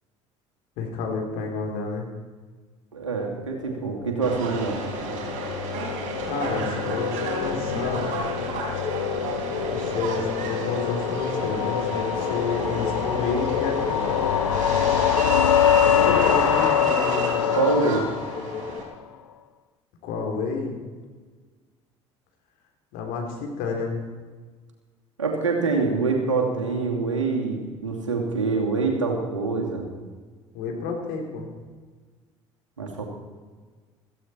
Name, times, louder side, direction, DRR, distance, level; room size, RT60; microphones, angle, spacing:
voice 1, 0.8-2.1 6.2-8.1 9.7-14.3 15.9-17.6 20.0-20.8 22.9-24.0 30.5-31.5, left 4 dB, 65° left, 2 dB, 3.5 m, -30 dB
voice 2, 2.9-4.8 17.5-18.1 25.2-29.9 32.8-33.0, right 4 dB, 85° right, 1 dB, 2.6 m, -25 dB
sound 1, 3.7-18.9, left 9 dB, 85° left, 0.6 m, -25 dB
Subway metro underground, 4.2-18.8, right 4 dB, 55° right, 4.5 m, -32 dB
sound 2, 8.8-18.8, left 5 dB, 30° left, 1.6 m, -35 dB
16.0 x 15.0 x 4.4 m, 1.4 s
figure-of-eight pair, 60°, 16 cm